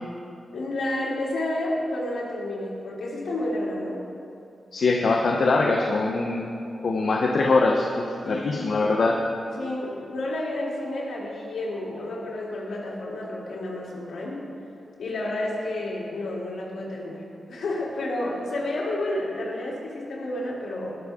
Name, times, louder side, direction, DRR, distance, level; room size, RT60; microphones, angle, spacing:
voice 1, 0.5-4.0 8.2-8.8 9.6-14.4 15.0-21.0, left 1 dB, 80° left, -5 dB, 3.0 m, -30 dB
voice 2, 4.7-6.5 6.8-7.9 8.2-9.2, left 3 dB, 65° left, 0 dB, 0.8 m, -22 dB
19.0 x 6.6 x 3.7 m, 2.6 s
cardioid pair, 80°, 0 cm